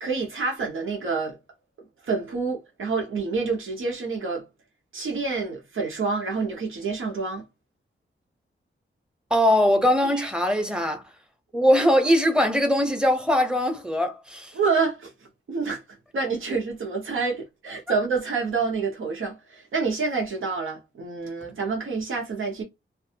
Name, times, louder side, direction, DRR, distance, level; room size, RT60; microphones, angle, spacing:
voice 1, 0.0-1.4 2.0-4.4 4.9-7.4 10.1-10.3 14.5-15.1 15.5-15.8 16.1-22.6, right 4 dB, 90° right, 0.8 m, -27 dB
voice 2, 9.3-11.0 11.5-14.5, equal, 5° right, 0.7 m, -21 dB
2.5 x 2.3 x 2.7 m
wide cardioid pair, 90°, 20 cm